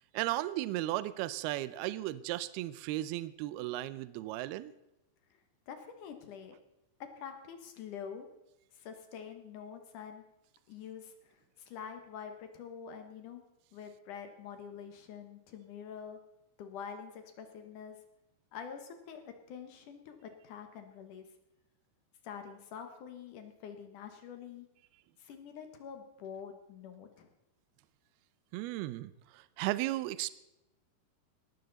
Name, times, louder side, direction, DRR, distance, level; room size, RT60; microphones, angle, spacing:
voice 1, 0.1-4.7 28.5-30.3, right 16 dB, 85° right, 16 dB, 2.3 m, -35 dB
voice 2, 5.7-6.6 7.0-8.3 8.7-10.2 10.7-13.4 13.7-16.2 16.6-18.0 18.5-21.3 22.2-24.7 25.2-27.3, left 7 dB, 65° left, 7 dB, 2.2 m, -46 dB
19.0 x 13.5 x 4.0 m, 0.92 s
omnidirectional pair, 5.1 m